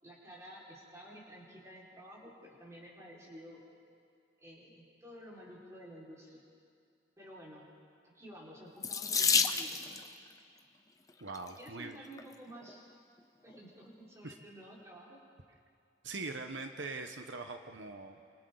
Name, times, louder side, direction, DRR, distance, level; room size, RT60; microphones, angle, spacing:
voice 1, 0.0-3.6 4.4-6.4 7.2-7.6 8.0-9.8 11.6-12.9 13.4-15.2, equal, 15° right, -5 dB, 5.0 m, -51 dB
Water tap faucet / Sink (filling or washing), 8.8-10.1 11.1-11.5 12.2-12.3 12.6-12.7, left 5 dB, 20° left, 0.7 m, -30 dB
voice 2, 11.2-11.9 14.2-14.4 16.0-18.2, right 3 dB, 80° right, 6 dB, 1.1 m, -42 dB
28.5 x 26.5 x 4.0 m, 2.4 s
head